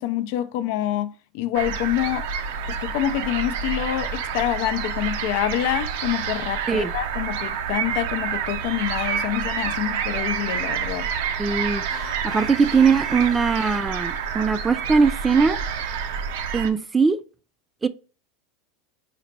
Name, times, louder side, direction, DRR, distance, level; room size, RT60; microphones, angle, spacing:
voice 1, 0.0-2.2 2.7-11.1, left 12 dB, 65° left, 0.4 m, -26 dB
sound 1, 1.5-16.7, right 7 dB, 75° right, 0.5 m, -28 dB
voice 2, 11.4-11.8 12.3-15.6 16.5-17.2 17.8-17.9, right 5 dB, 15° right, 0.3 m, -20 dB
sound 2, 11.9-14.3, left 3 dB, 15° left, 0.8 m, -42 dB
4.1 x 2.1 x 4.1 m
supercardioid pair, 110°, 0 cm